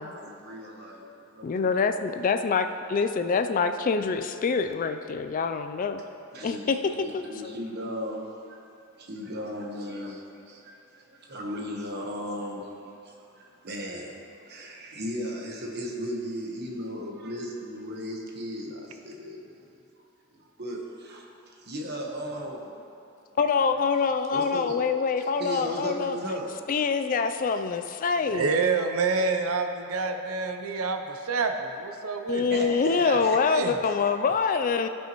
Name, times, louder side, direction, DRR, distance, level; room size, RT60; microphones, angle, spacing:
voice 1, 0.2-0.9 1.4-1.7 6.3-8.6 9.0-19.6 20.3-22.7 24.3-24.8 25.4-26.5 32.5-33.4 33.8-34.0, equal, 50° right, 0 dB, 1.1 m, -36 dB
voice 2, 1.4-6.0 6.4-7.6 23.4-26.2 26.7-28.6 32.3-34.9, left 5 dB, 40° left, 8 dB, 0.3 m, -25 dB
voice 3, 28.3-33.8, right 4 dB, 85° right, 6 dB, 0.6 m, -28 dB
15.0 x 5.6 x 3.0 m, 2.6 s
head